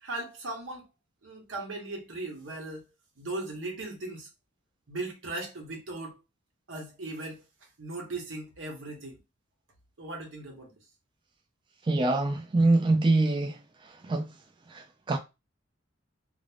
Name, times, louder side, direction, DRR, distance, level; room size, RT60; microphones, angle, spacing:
voice 1, 0.0-0.8 1.2-2.8 3.2-4.3 4.9-6.2 6.7-7.4 7.8-9.2 10.0-10.7, right 2 dB, 85° right, 1.0 m, -38 dB
voice 2, 11.9-13.6 14.0-14.3 14.7-15.2, right 2 dB, 25° right, 0.3 m, -24 dB
2.5 x 2.0 x 3.1 m
head